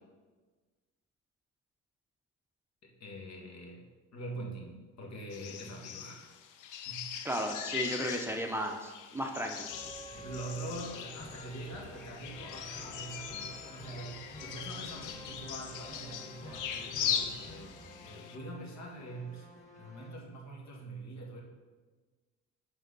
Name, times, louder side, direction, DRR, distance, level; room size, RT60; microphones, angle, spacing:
voice 1, 2.8-3.9 4.1-6.3 6.9-7.3 10.1-19.5 19.7-21.4, right 1 dB, 60° left, 0 dB, 2.0 m, -44 dB
sound 1, 5.3-18.4, left 8 dB, 85° left, 0.7 m, -40 dB
voice 2, 7.2-9.7, equal, 10° right, 2 dB, 0.8 m, -34 dB
sound 2, 9.7-20.2, equal, 25° left, 1.8 m, -49 dB
11.5 x 4.6 x 4.1 m, 1.4 s
cardioid pair, 90°, 30 cm